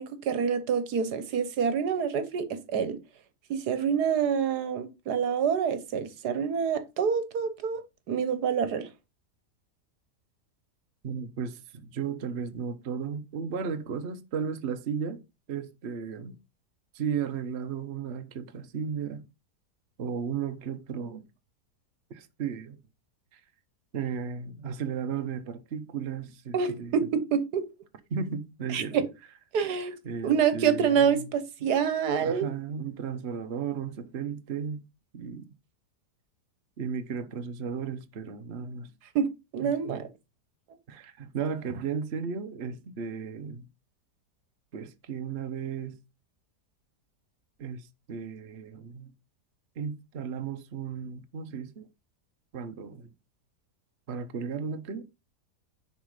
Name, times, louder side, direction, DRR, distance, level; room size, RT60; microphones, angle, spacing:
voice 1, 0.0-3.0 3.5-7.8 8.1-8.9 26.5-27.7 28.7-29.1 29.5-29.9 30.2-32.5 39.1-39.3 39.5-40.0, right 7 dB, 75° right, 1.5 m, -27 dB
voice 2, 11.0-15.2 15.5-16.4 16.9-19.2 20.0-21.3 22.1-22.8 23.3-23.4 23.9-27.0 28.1-29.0 30.0-31.3 31.6-31.7 32.2-34.8 35.1-35.5 36.8-38.9 39.6-40.1 40.9-43.7 44.7-46.0 47.6-49.1 49.8-51.9 52.5-53.1 54.1-55.0, right 6 dB, 45° right, 1.0 m, -35 dB
10.5 x 4.2 x 4.9 m
omnidirectional pair, 1.7 m